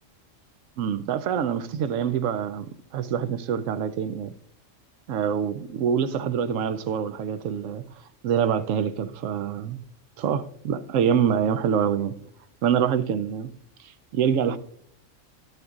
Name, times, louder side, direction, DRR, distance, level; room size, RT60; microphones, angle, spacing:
voice 1, 0.8-4.3 5.1-7.8 8.2-9.8 10.2-12.2 12.6-13.5 14.1-14.6, right 8 dB, 85° right, 1.0 m, -25 dB
11.5 x 7.8 x 2.4 m
omnidirectional pair, 1.3 m